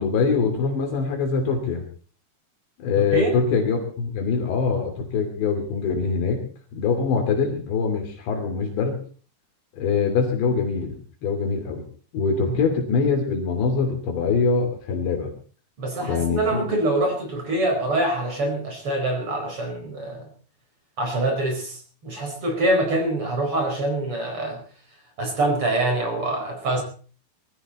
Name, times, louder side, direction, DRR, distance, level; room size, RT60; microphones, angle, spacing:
voice 1, 0.0-1.8 2.8-6.4 6.7-9.0 9.8-11.8 12.1-15.3 16.0-16.8, left 5 dB, 75° left, 3 dB, 5.1 m, -23 dB
voice 2, 3.0-3.4 12.5-12.6 15.8-20.3 21.0-24.6 25.2-26.8, right 2 dB, 30° right, 3 dB, 5.3 m, -25 dB
23.0 x 14.5 x 4.3 m, 0.41 s
omnidirectional pair, 5.2 m